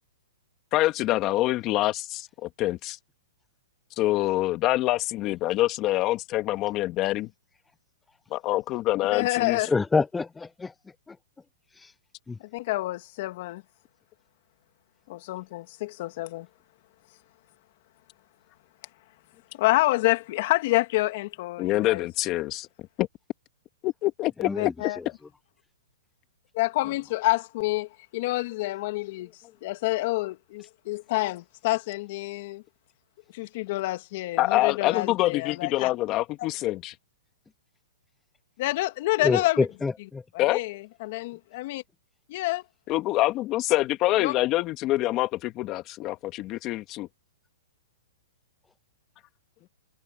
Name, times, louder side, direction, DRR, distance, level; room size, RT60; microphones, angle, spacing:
voice 1, 0.7-3.0 4.0-7.3 8.3-9.7 21.6-22.7 23.0-23.1 23.8-24.7 34.4-36.9 40.4-40.6 42.9-47.1, left 17 dB, 30° left, 2.2 m, -26 dB
voice 2, 9.1-9.7 12.5-13.6 15.1-16.5 19.5-22.0 24.6-25.0 26.5-29.3 29.6-32.6 33.3-35.9 38.6-39.7 40.3-41.8 42.3-42.6 44.2-44.3, left 19 dB, 50° left, 2.4 m, -28 dB
voice 3, 9.7-10.7 11.1-11.2 12.3-12.4 24.4-24.7 39.2-40.2, left 4 dB, 10° left, 0.5 m, -26 dB
hypercardioid pair, 145°, 0 cm